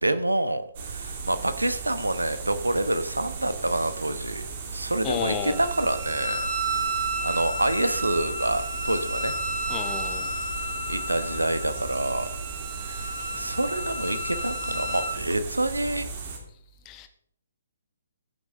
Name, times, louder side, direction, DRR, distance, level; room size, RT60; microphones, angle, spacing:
voice 1, 0.0-4.4 4.7-6.5 7.2-9.3 10.9-12.4 12.8-16.1, right 1 dB, 80° right, 1.2 m, -27 dB
sound 1, 0.7-16.4, right 5 dB, 40° right, 2.7 m, -36 dB
voice 2, 5.0-5.6 9.7-10.4 16.8-17.1, left 9 dB, 20° left, 1.1 m, -32 dB
Wind instrument woodwind instrument, 5.2-15.2, right 1 dB, 15° right, 3.3 m, -32 dB
15.0 x 7.8 x 3.8 m
figure-of-eight pair, 130°, 0 cm